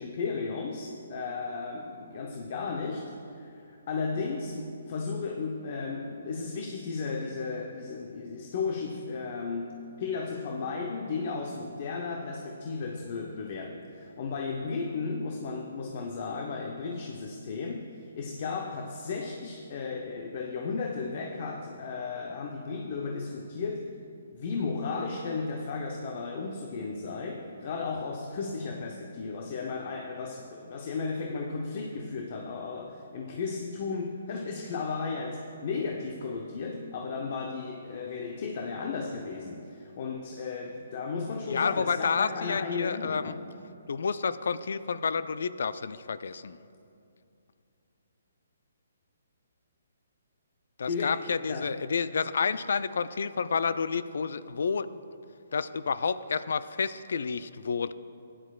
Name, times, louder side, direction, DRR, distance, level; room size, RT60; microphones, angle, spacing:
voice 1, 0.0-23.9 24.3-43.5 50.9-51.7, left 4 dB, 45° left, 2 dB, 0.7 m, -34 dB
voice 2, 41.5-43.3 43.9-46.6 50.8-54.9 55.5-57.9, left 5 dB, 70° left, 15 dB, 0.3 m, -30 dB
15.0 x 10.0 x 2.4 m, 2.5 s
hypercardioid pair, 150°, 0 cm